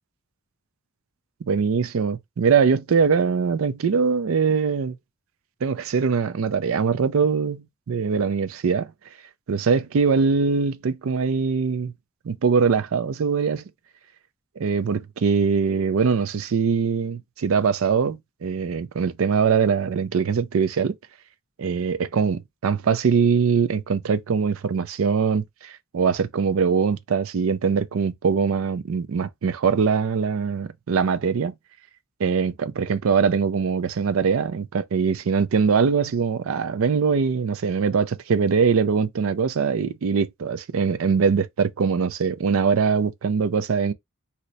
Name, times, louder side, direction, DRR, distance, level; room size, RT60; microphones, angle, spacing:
voice 1, 1.4-5.0 5.6-8.9 9.5-11.9 12.2-13.6 14.6-20.9 21.6-31.5 32.2-43.9, right 5 dB, 70° right, 0.4 m, -22 dB
2.8 x 2.1 x 3.9 m
head